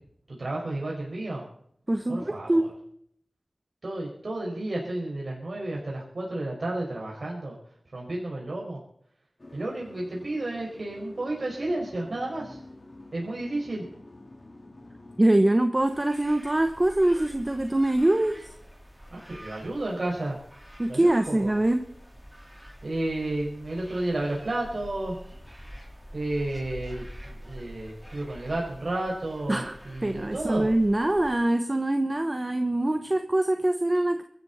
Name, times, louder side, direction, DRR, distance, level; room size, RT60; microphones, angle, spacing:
voice 1, 0.3-1.5 2.1-2.7 3.8-7.6 7.9-8.8 9.5-12.6 13.1-13.8 19.1-20.4 20.9-21.5 22.8-25.2 26.1-30.7, right 2 dB, 65° right, -3 dB, 5.5 m, -32 dB
voice 2, 1.9-2.6 15.2-18.5 20.8-21.8 29.5-29.7 30.0-34.2, right 1 dB, 30° right, 7 dB, 1.2 m, -24 dB
sound 1, 9.4-15.2, left 2 dB, 40° left, 4.1 m, -48 dB
sound 2, 15.7-31.3, equal, 5° right, 4.1 m, -46 dB
23.5 x 13.5 x 4.3 m, 0.66 s
wide cardioid pair, 75°, 0 cm